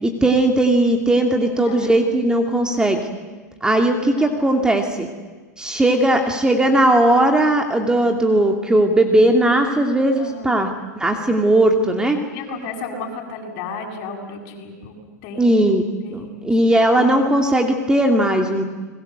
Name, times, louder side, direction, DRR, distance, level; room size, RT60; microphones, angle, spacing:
voice 1, 0.0-3.1 3.6-5.1 5.6-12.2 15.4-15.8 16.1-18.6, right 1 dB, 10° right, 3 dB, 2.7 m, -18 dB
voice 2, 1.4-1.9 4.1-4.6 10.2-10.7 12.2-15.0 15.2-15.6 16.0-16.5, left 4 dB, 50° left, 2 dB, 7.4 m, -34 dB
29.5 x 21.0 x 8.1 m, 1.3 s
hypercardioid pair, 105°, 9 cm